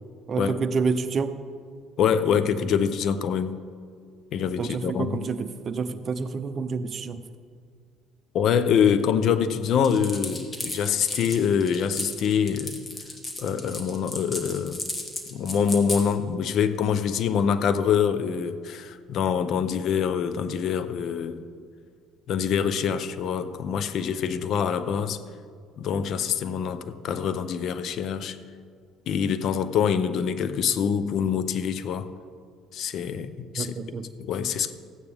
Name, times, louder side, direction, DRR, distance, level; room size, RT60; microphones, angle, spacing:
voice 1, 0.3-1.4 4.6-7.2 33.6-34.1, right 4 dB, 40° right, 11 dB, 0.7 m, -28 dB
voice 2, 2.0-3.6 4.3-5.1 8.3-12.8 13.4-14.8 15.3-21.4 22.3-25.2 25.8-28.4 29.1-32.1 32.7-33.7 34.2-34.7, left 7 dB, 60° left, 13 dB, 0.6 m, -25 dB
sound 1, 9.8-16.0, left 2 dB, 25° left, 1.8 m, -34 dB
14.5 x 9.0 x 3.5 m, 2.1 s
supercardioid pair, 85°, 0 cm